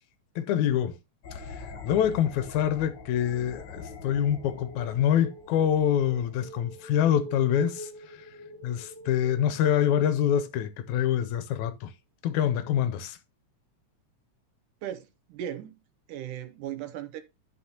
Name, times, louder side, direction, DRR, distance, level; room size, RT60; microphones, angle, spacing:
voice 1, 0.4-1.0 1.3-8.3 8.6-11.9 12.2-13.2, left 10 dB, 75° left, 2.0 m, -26 dB
sound 1, 1.2-6.7, left 4 dB, 55° left, 1.3 m, -44 dB
sound 2, 2.7-11.1, equal, 60° right, 2.5 m, -46 dB
voice 2, 14.8-15.8 16.1-17.2, right 10 dB, 75° right, 2.4 m, -37 dB
12.0 x 5.6 x 2.8 m
omnidirectional pair, 3.7 m